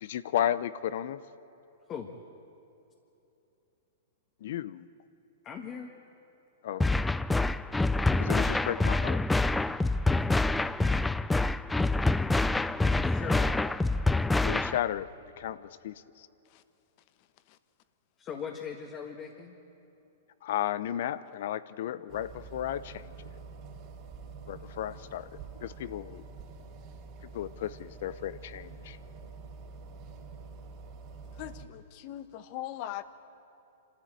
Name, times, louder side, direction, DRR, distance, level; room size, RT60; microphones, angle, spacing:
voice 1, 0.0-1.2 4.4-4.9 6.6-6.8 8.2-9.2 14.4-15.1 15.4-16.3 20.4-23.1 24.5-25.3 25.6-26.2 27.3-29.0, left 11 dB, 65° left, 16 dB, 0.7 m, -33 dB
voice 2, 5.4-5.9 12.9-13.5 18.2-19.6, left 7 dB, 30° left, 1 dB, 1.7 m, -39 dB
sound 1, 6.8-14.8, left 2 dB, 5° left, 0.4 m, -26 dB
sound 2, 22.1-31.7, right 4 dB, 35° right, 3.9 m, -47 dB
voice 3, 31.4-33.0, left 13 dB, 45° left, 13 dB, 1.1 m, -39 dB
26.0 x 13.5 x 8.9 m, 2.9 s
hypercardioid pair, 120°, 0 cm